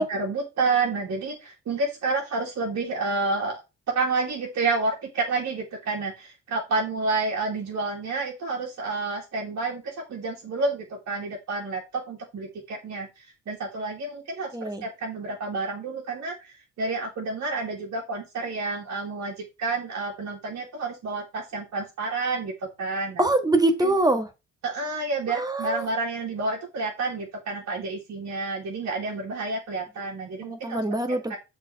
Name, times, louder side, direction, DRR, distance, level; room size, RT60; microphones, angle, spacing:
voice 1, 0.0-3.6 3.9-23.2 23.8-23.9 24.6-30.8 31.3-31.4, right 3 dB, 60° right, -2 dB, 2.6 m, -29 dB
voice 2, 14.5-14.8 23.2-24.3 25.3-25.9 30.4-31.3, right 2 dB, 10° right, 8 dB, 1.7 m, -24 dB
7.2 x 4.7 x 4.7 m, 0.25 s
cardioid pair, 90°, 30 cm